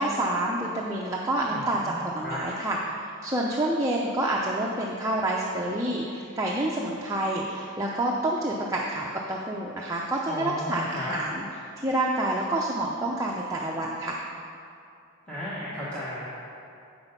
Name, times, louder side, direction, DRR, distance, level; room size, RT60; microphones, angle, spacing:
voice 1, 0.0-2.9 3.2-11.4 11.8-14.2, right 1 dB, 15° right, -3 dB, 0.5 m, -28 dB
voice 2, 1.5-2.4 10.3-11.1 15.3-16.3, left 1 dB, 5° left, -11 dB, 1.3 m, -35 dB
7.9 x 6.2 x 5.4 m, 2.6 s
head